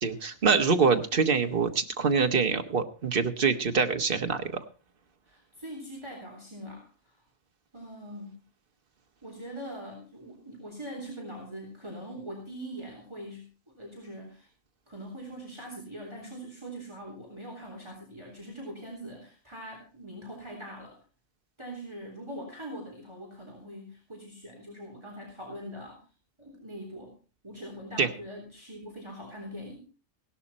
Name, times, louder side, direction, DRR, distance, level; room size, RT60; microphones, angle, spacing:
voice 1, 0.0-4.5 28.0-28.1, right 5 dB, 50° right, 6 dB, 1.4 m, -25 dB
voice 2, 5.3-7.2 7.7-8.4 9.2-14.5 14.9-21.0 21.6-26.0 26.4-27.1 27.4-29.8, equal, 25° right, -1 dB, 3.7 m, -42 dB
16.5 x 12.0 x 4.3 m, 0.35 s
omnidirectional pair, 1.2 m